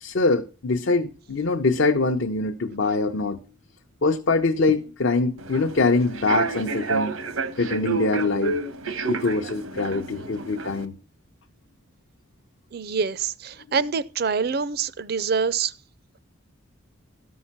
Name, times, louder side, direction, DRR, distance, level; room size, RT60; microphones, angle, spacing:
voice 1, 0.0-3.4 4.0-7.1 7.6-8.6 9.1-11.0, left 3 dB, 65° left, 0.7 m, -23 dB
Human voice / Subway metro underground, 5.4-10.8, right 3 dB, 85° right, 1.0 m, -29 dB
voice 2, 12.7-15.7, right 5 dB, 50° right, 0.4 m, -25 dB
13.5 x 5.5 x 5.9 m
head